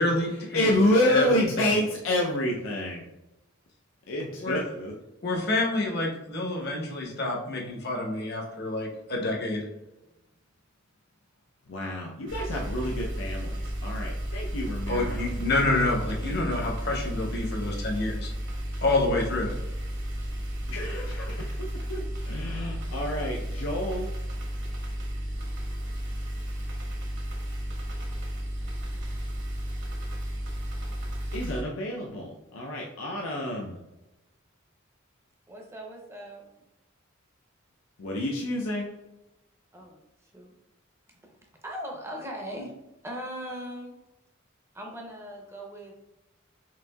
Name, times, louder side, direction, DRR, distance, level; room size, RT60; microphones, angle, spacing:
voice 1, 0.0-0.7 1.1-1.8 4.4-4.6 5.2-9.7 14.9-18.3 18.8-19.5, left 2 dB, 55° left, -1 dB, 0.9 m, -28 dB
voice 2, 0.5-3.0 4.1-4.9 11.7-15.3 20.7-24.1 31.3-33.8 38.0-38.9, left 1 dB, 75° left, -1 dB, 0.5 m, -28 dB
sound 1, 12.3-31.6, equal, 60° right, 1.0 m, -33 dB
voice 3, 35.5-36.5 39.7-40.0 40.3-40.5 41.6-42.8 43.0-43.9 44.7-45.9, equal, 15° right, 1 dB, 0.6 m, -39 dB
5.9 x 2.6 x 2.3 m, 0.97 s
head